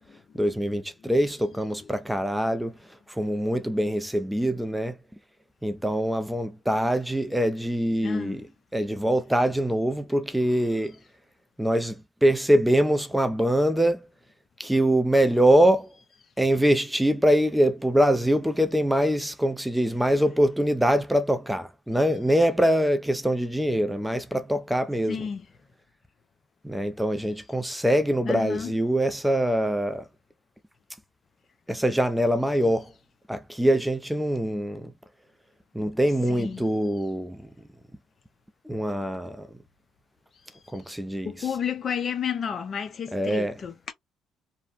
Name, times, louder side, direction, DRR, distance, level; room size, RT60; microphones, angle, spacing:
voice 1, 0.4-2.7 3.1-4.9 5.6-8.4 8.7-10.9 11.6-14.1 14.6-15.9 16.4-25.2 26.6-30.0 31.7-32.9 33.3-34.9 35.7-37.5 38.7-39.5 40.7-41.3 43.1-43.5, equal, 5° right, 0.4 m, -23 dB
voice 2, 8.0-8.5 10.7-10.9 25.1-25.5 28.2-28.8 36.3-36.7 41.2-43.9, left 7 dB, 45° left, 0.5 m, -32 dB
2.8 x 2.0 x 2.4 m
supercardioid pair, 85°, 0 cm